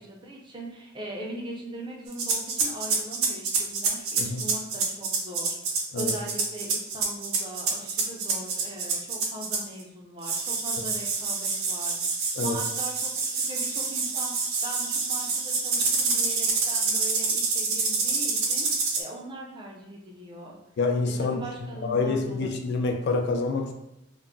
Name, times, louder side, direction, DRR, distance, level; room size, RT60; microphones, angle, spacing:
voice 1, 0.0-12.1 12.4-20.5 21.2-22.7, right 1 dB, 20° right, -2 dB, 0.4 m, -40 dB
sound 1, 2.1-9.8 10.2-19.0, right 4 dB, 85° right, 0.5 m, -27 dB
voice 2, 20.8-21.4 21.8-23.7, left 3 dB, 55° left, 3 dB, 0.3 m, -27 dB
2.2 x 2.0 x 3.6 m, 0.87 s
head